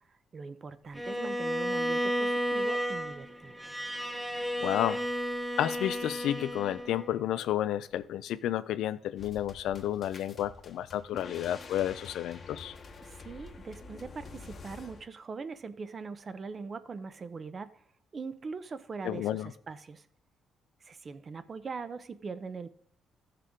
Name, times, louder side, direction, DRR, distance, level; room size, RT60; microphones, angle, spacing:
voice 1, 0.1-3.7 13.0-17.8 18.1-20.1 20.8-22.7, right 4 dB, 40° right, 0.8 m, -41 dB
Bowed string instrument, 0.9-7.2, equal, 5° right, 1.1 m, -33 dB
voice 2, 4.6-5.0 5.6-12.7 19.0-19.5, left 12 dB, 85° left, 0.5 m, -31 dB
sound 1, 9.2-15.0, left 4 dB, 45° left, 1.2 m, -47 dB
14.5 x 6.7 x 3.7 m
cardioid pair, 90°, 0 cm